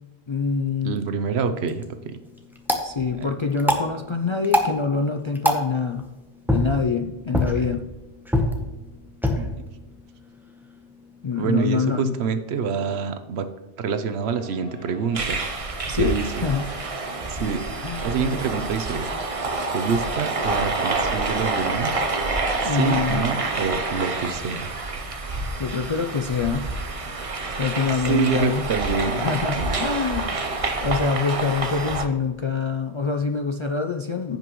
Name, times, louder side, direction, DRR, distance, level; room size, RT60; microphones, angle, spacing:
voice 1, 0.3-1.0 2.8-6.1 6.5-7.8 11.2-12.1 15.9-16.2 16.4-16.7 17.8-18.4 22.6-23.2 25.6-26.7 27.6-28.7 29.2-30.4 30.8-34.4, left 5 dB, 55° left, 4 dB, 0.3 m, -25 dB
voice 2, 0.8-2.2 3.2-3.3 9.3-9.5 11.3-13.5 13.8-15.4 15.9-16.5 17.3-17.7 18.0-19.1 19.7-22.0 22.6-24.7 28.1-29.2 29.6-29.8, right 6 dB, 90° right, 9 dB, 1.0 m, -26 dB
sound 1, 1.5-11.6, left 1 dB, ahead, 0.8 m, -28 dB
sound 2, 14.2-22.9, left 1 dB, 75° left, 2.1 m, -46 dB
sound 3, 15.1-32.1, right 3 dB, 35° right, 0.8 m, -27 dB
15.5 x 5.3 x 3.1 m, 1.1 s
omnidirectional pair, 1.1 m